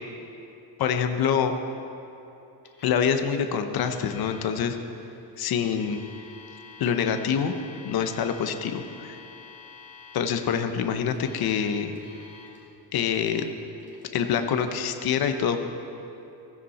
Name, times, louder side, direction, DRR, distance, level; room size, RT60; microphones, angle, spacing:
voice 1, 0.8-1.5 2.8-4.8 5.4-6.0 6.8-7.5 7.8-9.2 10.1-11.9 12.9-13.4 14.1-15.6, left 7 dB, 55° left, 7 dB, 1.0 m, -25 dB
Alarm, 2.6-3.0 3.2-3.3 3.8-4.4 5.3-10.4 11.1-12.6 13.1-13.5 13.8-14.6, left 5 dB, 25° left, 2.9 m, -48 dB
16.0 x 15.0 x 4.3 m, 2.9 s
cardioid pair, 170°, 45 cm